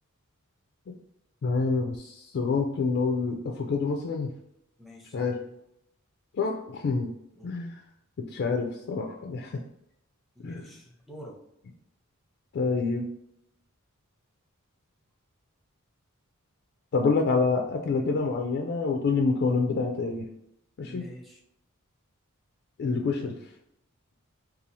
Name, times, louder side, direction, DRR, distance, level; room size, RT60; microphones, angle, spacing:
voice 1, 1.4-4.3 5.1-5.4 6.3-7.1 7.4-7.8 8.2-9.6 10.4-10.7 12.5-13.1 16.9-20.3 20.8-21.1 22.8-23.5, left 4 dB, 50° left, 2 dB, 0.3 m, -27 dB
voice 2, 4.8-5.3 7.4-7.5 10.4-11.4 20.9-21.4, equal, ahead, -2 dB, 0.6 m, -46 dB
2.7 x 2.4 x 4.1 m, 0.79 s
head